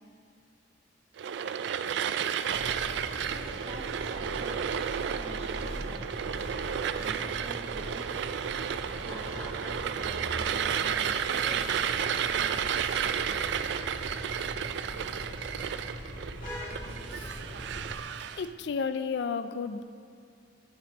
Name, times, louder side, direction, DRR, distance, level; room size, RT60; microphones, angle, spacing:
sound 1, 1.2-18.5, right 8 dB, 65° right, 0.3 m, -32 dB
sound 2, 2.4-17.9, equal, 45° left, 2.2 m, -41 dB
voice 1, 3.2-4.7 5.1-6.6 7.0-8.2 9.1-11.6, right 1 dB, 30° right, 0 dB, 1.2 m, -47 dB
voice 2, 18.4-19.8, left 5 dB, 65° left, 11 dB, 0.4 m, -32 dB
13.0 x 5.3 x 3.9 m, 2.4 s
head